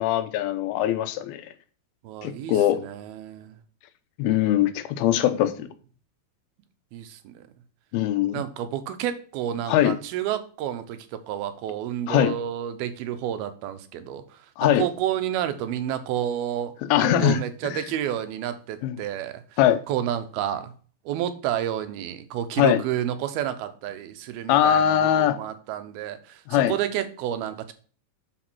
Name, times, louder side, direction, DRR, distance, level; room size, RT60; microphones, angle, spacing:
voice 1, 0.0-1.5 2.2-2.8 4.2-5.7 7.9-8.4 9.7-10.0 12.1-12.3 14.6-14.8 16.9-17.4 18.8-19.0 19.6-19.8 22.6-22.8 24.5-25.4 26.5-26.7, left 11 dB, 85° left, 2.7 m, -21 dB
voice 2, 2.0-3.6 5.2-5.5 6.9-7.4 8.3-16.7 17.0-19.6 19.9-20.7 21.1-27.7, right 11 dB, 80° right, 2.8 m, -30 dB
10.5 x 4.9 x 6.2 m
omnidirectional pair, 4.4 m